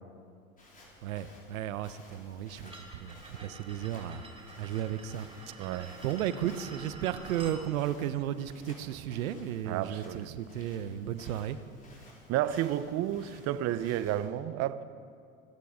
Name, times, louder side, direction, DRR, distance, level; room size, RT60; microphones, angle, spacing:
Walk footsteps, 0.6-14.3, left 1 dB, 20° left, 4.0 m, -55 dB
voice 1, 1.0-4.2 4.6-5.5 6.0-11.6, right 11 dB, 80° right, 0.9 m, -34 dB
sound 1, 2.7-7.6, right 2 dB, 15° right, 2.4 m, -49 dB
voice 2, 5.6-6.0 9.7-10.4 12.3-14.8, right 12 dB, 40° right, 0.6 m, -31 dB
24.0 x 9.2 x 5.0 m
hypercardioid pair, 100°, 41 cm